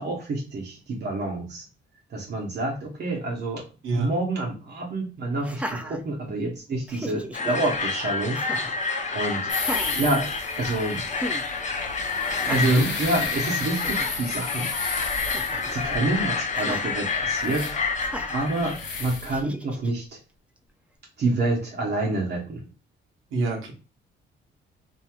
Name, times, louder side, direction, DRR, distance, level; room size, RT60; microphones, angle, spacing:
voice 1, 0.0-1.6 2.1-3.6 3.9-8.4 9.1-9.5 10.0-10.3 10.6-11.0 12.4-14.7 15.7-17.7 18.3-20.2 21.2-22.6, right 2 dB, 55° right, -2 dB, 0.9 m, -28 dB
Laughter, 5.4-6.5 6.9-7.6 8.3-8.8 9.5-10.8 11.2-11.4 12.3-12.9 13.4-13.5 13.7-14.1 15.2-15.8 16.5-16.9 18.0-18.5 19.3-19.9, right 1 dB, 5° right, 0.3 m, -36 dB
sound 1, 7.3-19.0, left 4 dB, 35° left, 0.6 m, -29 dB
sound 2, 9.5-19.4, left 4 dB, 65° left, 0.9 m, -34 dB
voice 2, 12.5-12.9 23.3-23.7, right 2 dB, 85° right, 0 dB, 1.0 m, -25 dB
2.9 x 2.7 x 2.3 m, 0.33 s
cardioid pair, 90°, 20 cm